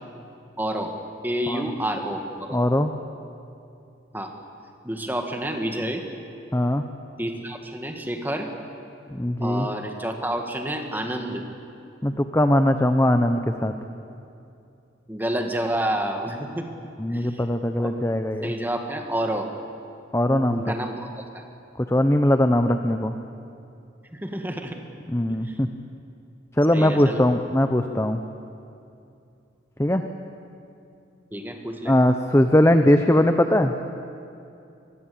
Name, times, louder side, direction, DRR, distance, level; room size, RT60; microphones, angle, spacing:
voice 1, 0.6-0.9 1.2-2.6 4.1-4.3 4.8-6.0 7.2-8.5 9.4-11.4 15.1-16.7 17.1-17.5 17.8-18.0 18.4-19.5 20.5-21.5 24.1-24.8 25.4-25.6 26.7-27.2 31.3-32.0, right 1 dB, 10° right, 4 dB, 2.0 m, -29 dB
voice 2, 2.5-2.9 6.5-6.8 9.1-9.7 12.0-13.7 17.0-18.5 20.1-20.7 21.9-23.1 25.1-25.7 26.6-28.2 29.8-30.0 31.9-33.7, left 1 dB, 15° left, 7 dB, 0.8 m, -20 dB
25.5 x 21.5 x 8.7 m, 2.6 s
head